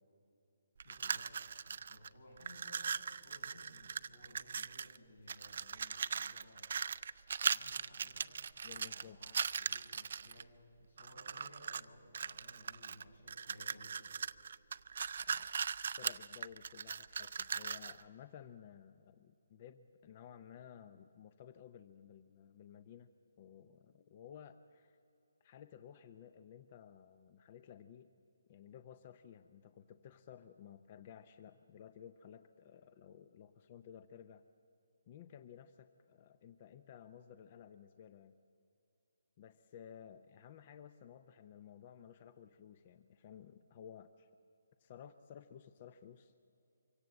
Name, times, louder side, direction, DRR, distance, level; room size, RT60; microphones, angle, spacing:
voice 1, 0.8-1.4 1.7-6.7 7.4-8.4 8.7-14.2, left 1 dB, 85° left, 0 dB, 7.5 m, -59 dB
sound 1, 0.8-2.1 2.4-5.0 5.3-10.4 11.0-11.9 12.1-18.0, right 6 dB, 55° right, 0.4 m, -39 dB
voice 2, 8.6-9.2 15.3-15.5 16.0-23.1 23.4-25.0 25.4-28.1 28.5-34.4 35.1-38.4 39.4-44.3 44.8-46.3, left 9 dB, 30° left, 11 dB, 0.6 m, -55 dB
23.5 x 17.0 x 7.9 m, 2.7 s
hypercardioid pair, 160°, 0 cm